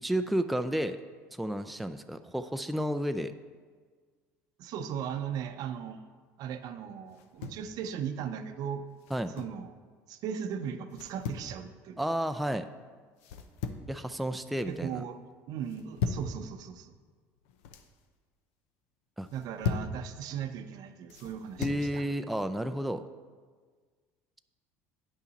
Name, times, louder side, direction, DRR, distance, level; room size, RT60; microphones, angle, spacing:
voice 1, 0.0-1.0 1.3-3.3 9.1-9.3 12.0-12.7 13.9-15.0 19.2-19.3 21.6-23.0, equal, ahead, 8 dB, 0.3 m, -31 dB
voice 2, 4.6-6.0 6.4-8.9 9.2-9.8 10.1-12.0 14.7-15.2 15.5-17.0 19.3-22.0, right 8 dB, 60° right, 9 dB, 0.6 m, -37 dB
sound 1, 7.1-7.7 9.0-9.6 10.9-11.5 13.2-14.0 14.3-14.8 15.7-16.3 17.4-17.9 19.2-20.0 21.1-21.9, left 6 dB, 85° left, 0.6 m, -37 dB
8.8 x 5.6 x 4.0 m, 1.6 s
supercardioid pair, 85°, 7 cm